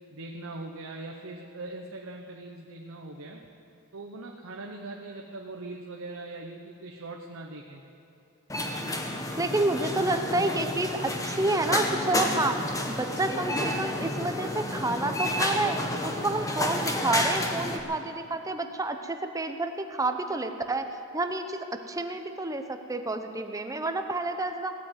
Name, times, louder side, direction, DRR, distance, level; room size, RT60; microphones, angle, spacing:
voice 1, 0.1-3.4 3.9-7.8, right 2 dB, 65° right, 1 dB, 1.0 m, -41 dB
sound 1, 8.5-17.8, left 1 dB, 15° left, 1.1 m, -30 dB
voice 2, 9.4-12.6 12.9-15.8 16.0-20.9 21.1-24.7, right 2 dB, 15° right, 7 dB, 0.8 m, -29 dB
17.5 x 8.9 x 8.0 m, 2.6 s
head